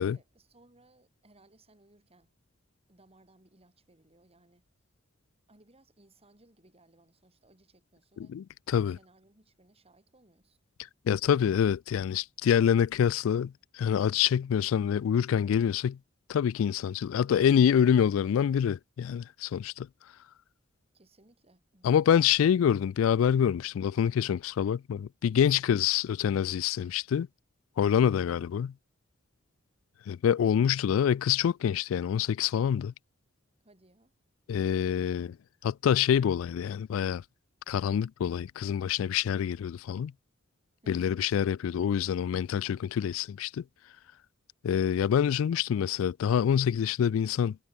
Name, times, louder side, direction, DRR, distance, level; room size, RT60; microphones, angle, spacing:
voice 1, 0.0-2.4 2.9-4.7 5.5-8.4 8.8-10.6 20.9-22.3 23.6-23.8 25.3-25.8 28.0-28.4 33.6-34.1 40.8-41.2, right 2 dB, 30° right, 4.2 m, -62 dB
voice 2, 8.3-9.0 11.1-16.0 16.3-19.9 21.8-27.3 27.8-28.7 30.1-32.9 34.5-35.4 35.6-37.2 37.7-40.1 40.9-43.6 44.6-47.6, left 8 dB, 80° left, 0.3 m, -26 dB
head